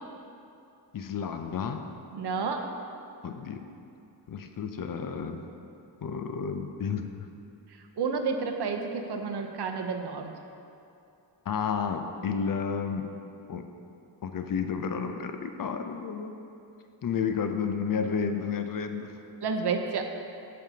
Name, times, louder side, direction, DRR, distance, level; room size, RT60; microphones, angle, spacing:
voice 1, 0.9-1.9 3.2-3.6 4.3-5.4 6.0-7.1 11.5-13.1 13.5-13.7 14.2-16.4 17.0-19.1, left 6 dB, 50° left, 6 dB, 0.5 m, -31 dB
voice 2, 2.1-2.7 7.7-10.3 19.4-20.2, right 5 dB, 65° right, 4 dB, 0.8 m, -31 dB
15.0 x 5.4 x 2.8 m, 2.7 s
wide cardioid pair, 130°, 43 cm